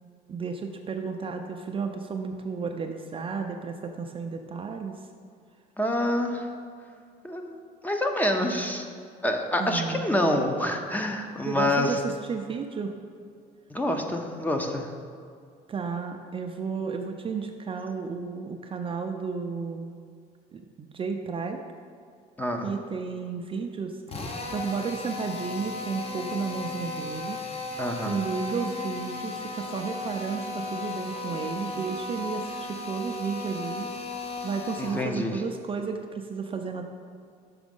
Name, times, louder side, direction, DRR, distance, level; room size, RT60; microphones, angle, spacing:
voice 1, 0.3-5.0 9.6-10.1 11.5-12.9 15.7-19.9 20.5-21.6 22.6-27.4 28.0-36.9, right 5 dB, 30° right, 4 dB, 0.4 m, -33 dB
voice 2, 5.8-6.5 7.2-7.6 7.8-8.8 9.2-12.0 13.7-14.9 22.4-22.7 27.8-28.2 34.8-35.4, left 1 dB, 10° left, 4 dB, 0.7 m, -27 dB
Drill, 24.1-35.1, left 3 dB, 35° left, 0.9 m, -35 dB
6.1 x 4.8 x 5.3 m, 2.2 s
cardioid pair, 110°, 17 cm